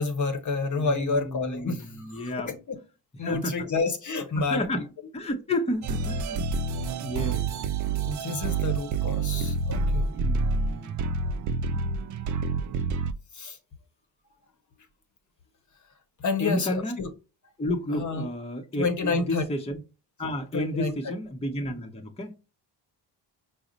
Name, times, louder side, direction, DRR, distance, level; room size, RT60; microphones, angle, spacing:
voice 1, 0.0-2.8 3.2-4.6 8.1-10.1 13.3-13.6 16.2-17.1 17.9-18.3 18.8-19.4 20.5-20.9, left 4 dB, 40° left, 0.9 m, -29 dB
voice 2, 0.8-2.5 3.2-3.7 4.4-4.9 5.1-6.5 7.0-7.6 10.1-11.2 16.4-17.0 17.6-19.8 20.2-22.3, left 1 dB, 15° left, 0.8 m, -31 dB
sound 1, 5.8-13.1, right 4 dB, 40° right, 0.5 m, -28 dB
4.8 x 2.1 x 3.9 m
supercardioid pair, 60°, 46 cm